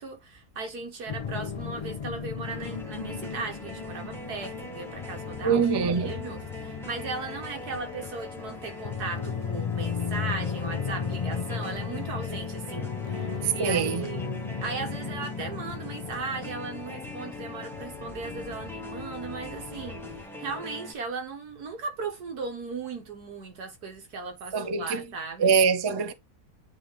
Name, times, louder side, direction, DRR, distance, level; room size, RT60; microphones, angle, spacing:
voice 1, 0.0-5.7 6.0-14.3 14.6-25.5, right 4 dB, 80° right, 2.0 m, -37 dB
sound 1, 1.1-20.2, left 6 dB, 60° left, 0.3 m, -36 dB
sound 2, 2.4-20.9, left 2 dB, ahead, 1.2 m, -42 dB
voice 2, 5.4-6.1 13.4-14.0 24.5-25.0 25.4-26.1, right 6 dB, 35° right, 0.4 m, -24 dB
9.3 x 3.5 x 3.1 m
omnidirectional pair, 1.7 m